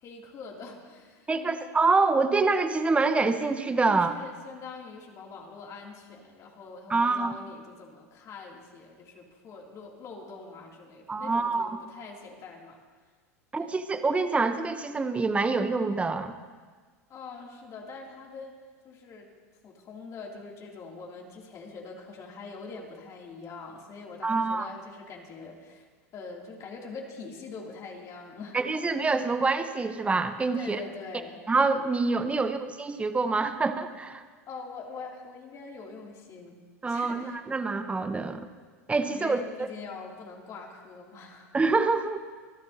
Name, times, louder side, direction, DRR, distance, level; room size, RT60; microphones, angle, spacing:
voice 1, 0.0-1.6 3.9-12.8 13.6-13.7 17.1-18.5 18.8-19.3 19.6-25.9 26.1-28.6 30.5-31.4 32.4-32.5 34.5-36.6 36.9-37.4 39.1-41.5, left 4 dB, 40° left, -1 dB, 2.9 m, -43 dB
voice 2, 1.3-4.1 6.9-7.4 11.1-11.8 13.5-16.3 24.2-24.7 28.5-30.8 31.5-34.2 36.8-38.5 38.9-39.7 41.5-42.2, right 3 dB, 15° right, 10 dB, 0.9 m, -26 dB
25.5 x 11.5 x 2.9 m, 1.5 s
hypercardioid pair, 90°, 8 cm